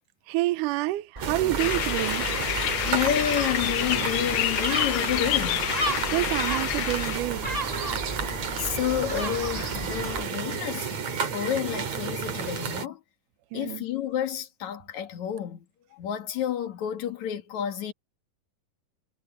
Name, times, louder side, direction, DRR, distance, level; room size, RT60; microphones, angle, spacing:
voice 1, 0.3-2.3 6.1-7.8 13.5-13.9, right 18 dB, 80° right, 2.2 m, -28 dB
Gull seagull, 1.2-10.2, right 1 dB, 20° right, 1.1 m, -35 dB
sound 1, 1.2-12.9, right 6 dB, 55° right, 3.5 m, -32 dB
sound 2, 1.6-7.2, left 16 dB, 90° left, 1.5 m, -29 dB
voice 2, 2.7-5.7 8.6-11.0 11.3-13.0 13.5-15.6 15.9-17.9, left 10 dB, 60° left, 3.2 m, -30 dB
omnidirectional pair, 3.8 m